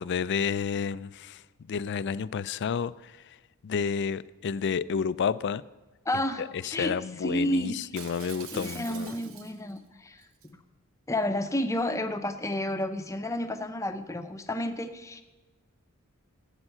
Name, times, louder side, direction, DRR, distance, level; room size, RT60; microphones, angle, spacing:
voice 1, 0.0-1.4 1.7-3.4 3.6-5.6 6.4-9.1, left 6 dB, 55° left, 0.4 m, -30 dB
voice 2, 6.1-6.4 6.7-7.0 7.2-7.8 8.5-10.6 11.1-15.2, left 1 dB, 15° left, 0.7 m, -31 dB
Shatter, 8.0-9.8 10.2-10.5, right 8 dB, 70° right, 0.8 m, -45 dB
12.5 x 8.9 x 5.7 m
head